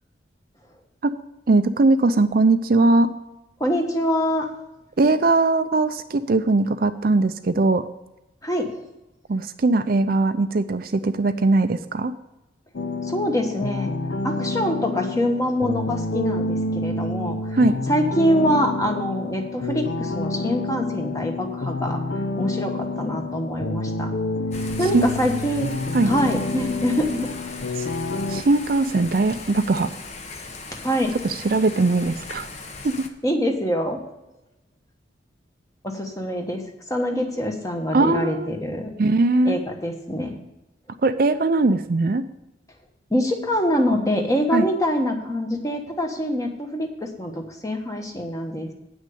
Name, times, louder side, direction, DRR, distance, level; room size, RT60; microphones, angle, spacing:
voice 1, 1.5-3.1 5.0-7.8 9.3-12.1 17.5-17.8 24.9-25.1 25.9-26.1 27.8-27.9 28.3-29.9 31.2-32.5 32.8-32.9 37.9-38.5 39.0-39.6 41.0-42.2 44.5-44.6, right 3 dB, 50° right, 9 dB, 0.5 m, -20 dB
voice 2, 3.6-4.5 8.4-8.7 13.0-13.9 14.2-17.5 17.9-22.0 22.4-24.1 24.8-25.7 26.0-27.3 30.8-31.1 33.2-34.0 35.8-36.6 36.9-38.9 39.4-40.3 43.1-48.7, equal, 15° left, 3 dB, 1.2 m, -24 dB
sound 1, 12.7-28.4, left 2 dB, 65° left, 0.7 m, -28 dB
Thunder / Rain, 24.5-33.1, left 3 dB, 35° left, 0.9 m, -38 dB
8.8 x 6.2 x 8.4 m, 0.95 s
head